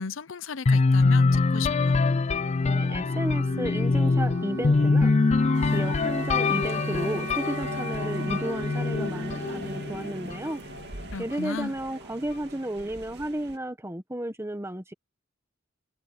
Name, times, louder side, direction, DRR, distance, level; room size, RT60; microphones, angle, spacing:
voice 1, 0.0-2.0 11.1-11.7, left 5 dB, 80° left, 0.8 m, -35 dB
sound 1, 0.7-10.5, left 3 dB, 35° left, 0.4 m, -24 dB
Wind instrument woodwind instrument, 2.4-11.1, right 4 dB, 75° right, 2.1 m, -40 dB
voice 2, 2.6-5.1 5.6-10.6 11.2-14.9, right 1 dB, 15° right, 1.5 m, -33 dB
sound 2, 5.5-13.6, right 2 dB, 55° right, 2.3 m, -43 dB
head